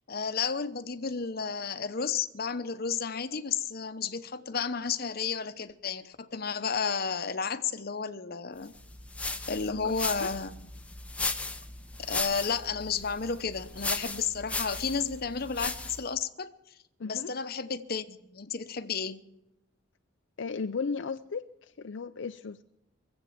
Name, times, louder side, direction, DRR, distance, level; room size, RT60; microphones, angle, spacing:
voice 1, 0.0-8.7 9.5-10.6 12.1-16.5 17.0-19.2, left 5 dB, 50° left, 0.9 m, -32 dB
sound 1, 8.7-16.1, left 3 dB, 5° left, 0.8 m, -36 dB
voice 2, 17.0-17.3 20.4-22.6, left 5 dB, 70° left, 0.5 m, -35 dB
23.5 x 8.1 x 7.3 m
head